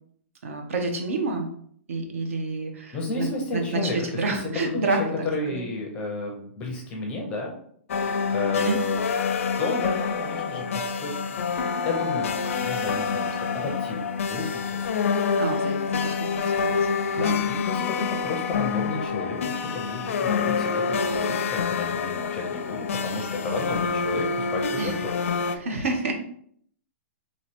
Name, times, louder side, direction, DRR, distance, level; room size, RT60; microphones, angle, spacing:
voice 1, 0.4-1.5 1.9-5.6 8.6-8.8 15.4-16.9 17.1-17.4 24.8-24.9 25.5-26.1, right 3 dB, 75° right, 3 dB, 1.0 m, -29 dB
voice 2, 2.9-4.4 4.7-4.8 5.2-7.6 8.3-9.0 9.6-15.2 17.2-25.2, left 3 dB, 15° left, 1 dB, 0.5 m, -32 dB
sound 1, 7.9-25.6, left 5 dB, 75° left, 0.4 m, -27 dB
3.1 x 3.0 x 4.3 m, 0.63 s
hypercardioid pair, 175°, 7 cm